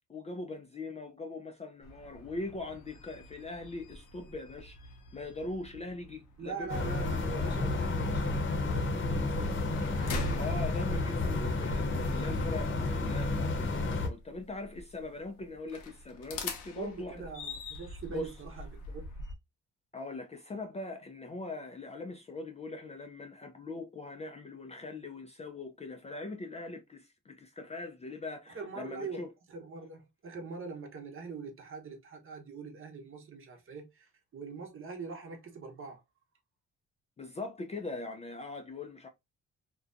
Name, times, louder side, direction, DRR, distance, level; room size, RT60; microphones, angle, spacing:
voice 1, 0.1-4.8 5.1-6.7 10.4-17.2 18.1-18.3 19.9-29.3 37.2-39.1, left 2 dB, 20° left, 0.4 m, -41 dB
sound 1, 1.8-19.3, left 3 dB, 80° left, 0.7 m, -45 dB
voice 2, 6.4-10.3 16.8-19.0 28.5-29.2 29.5-36.0, right 4 dB, 45° right, 0.8 m, -43 dB
sound 2, 6.7-14.1, left 2 dB, 40° left, 0.8 m, -31 dB
2.5 x 2.2 x 2.5 m
cardioid pair, 90°, 30 cm